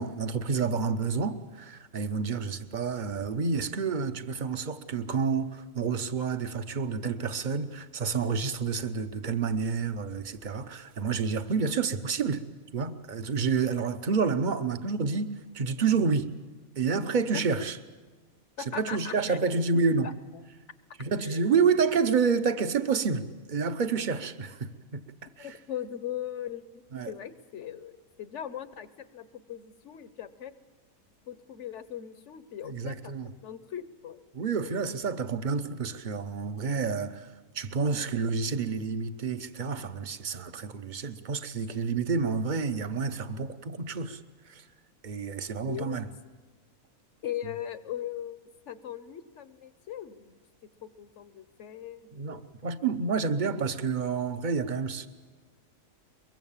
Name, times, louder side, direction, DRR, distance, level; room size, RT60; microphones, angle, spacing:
voice 1, 0.0-12.4 12.7-16.3 16.8-17.8 18.7-20.1 21.0-25.0 25.4-25.5 26.9-27.1 32.6-33.3 34.3-37.3 37.5-44.2 44.5-44.6 45.0-46.1 52.1-55.1, right 5 dB, 40° right, 0.9 m, -29 dB
voice 2, 18.6-19.4 19.7-20.1 21.2-21.6 25.4-30.5 31.3-33.1 33.4-34.2 45.7-46.0 47.2-48.4 48.7-50.4 50.8-52.4, left 10 dB, 60° left, 1.1 m, -39 dB
23.0 x 22.5 x 7.3 m
omnidirectional pair, 1.5 m